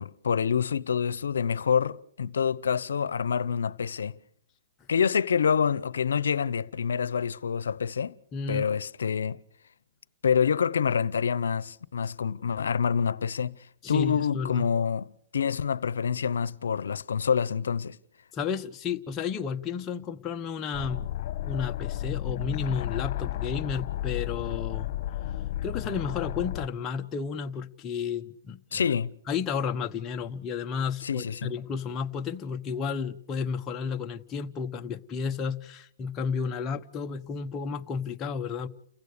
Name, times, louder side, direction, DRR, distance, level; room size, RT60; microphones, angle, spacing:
voice 1, 0.0-4.2 4.9-8.2 8.5-9.4 10.2-13.6 13.9-18.0 28.7-29.1 31.0-31.5, left 7 dB, 90° left, 0.8 m, -27 dB
voice 2, 8.3-8.7 13.8-14.6 18.3-21.1 21.4-24.9 25.6-28.8 29.3-38.7, left 6 dB, 25° left, 1.0 m, -32 dB
sound 1, 20.7-26.7, left 12 dB, 50° left, 1.4 m, -33 dB
30.0 x 15.5 x 6.7 m
hypercardioid pair, 140°, 0 cm